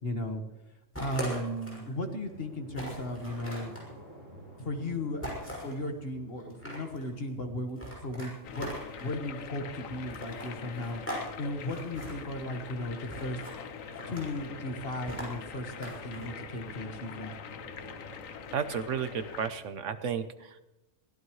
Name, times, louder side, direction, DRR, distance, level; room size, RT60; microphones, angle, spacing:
voice 1, 0.0-0.4 1.0-3.7 4.6-8.7 9.0-11.0 11.4-13.4 14.1-17.3, left 1 dB, 45° left, 5 dB, 1.8 m, -36 dB
sound 1, 0.9-1.9 2.3-2.4 2.7-3.9 5.2-5.8 6.4-7.0 7.8-9.1 10.1-11.3 11.5-12.1 13.1-13.6 13.9-14.4 15.1-16.3, equal, 10° left, 6.1 m, -40 dB
sound 2, 1.7-19.9, right 1 dB, 45° right, 4.7 m, -53 dB
sound 3, 8.4-19.5, left 6 dB, 80° left, 1.3 m, -44 dB
voice 2, 18.5-20.6, right 7 dB, 70° right, 11 dB, 1.1 m, -33 dB
23.0 x 17.0 x 3.2 m, 0.96 s
omnidirectional pair, 1.4 m